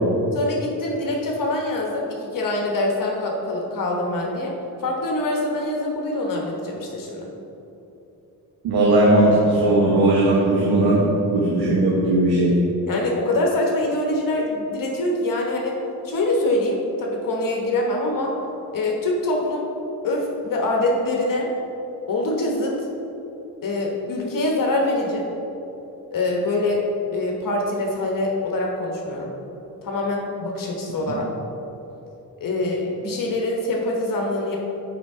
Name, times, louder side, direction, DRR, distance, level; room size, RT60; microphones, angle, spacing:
voice 1, 0.3-4.5 4.8-7.3 12.9-18.3 18.7-19.7 20.0-21.5 22.1-22.9 23.6-25.3 26.1-26.8 27.1-29.3 29.8-31.3 32.4-34.6, left 2 dB, 55° left, -1 dB, 1.1 m, -24 dB
voice 2, 8.6-11.0 11.3-12.5, right 2 dB, 75° right, -5 dB, 1.2 m, -17 dB
7.1 x 5.2 x 3.6 m, 3.0 s
cardioid pair, 85°, 39 cm